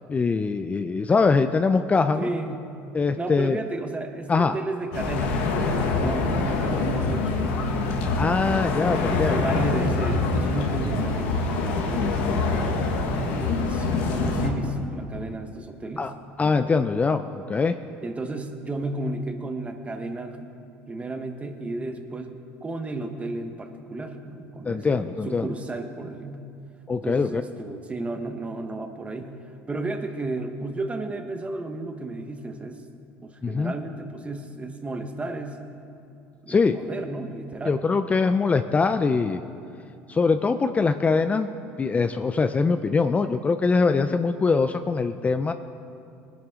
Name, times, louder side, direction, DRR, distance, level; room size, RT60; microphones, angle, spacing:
voice 1, 0.1-2.3 2.9-3.6 4.3-4.5 8.2-9.4 16.0-16.1 16.4-17.2 17.5-17.8 24.6-25.5 26.9-27.4 33.4-33.7 36.5-36.8 37.7-39.4 40.1-41.5 41.8-45.5, left 4 dB, 25° left, 9 dB, 0.5 m, -22 dB
voice 2, 2.1-2.7 3.1-8.0 9.1-12.2 13.1-16.1 16.4-16.7 18.0-20.5 20.9-22.3 22.6-26.5 27.0-29.4 29.7-32.8 33.2-35.6 36.4-37.8, right 2 dB, 20° right, 6 dB, 1.3 m, -33 dB
sound 1, 4.9-14.5, left 3 dB, 85° left, 1.5 m, -25 dB
19.5 x 10.5 x 3.7 m, 2.5 s
supercardioid pair, 90°, 6 cm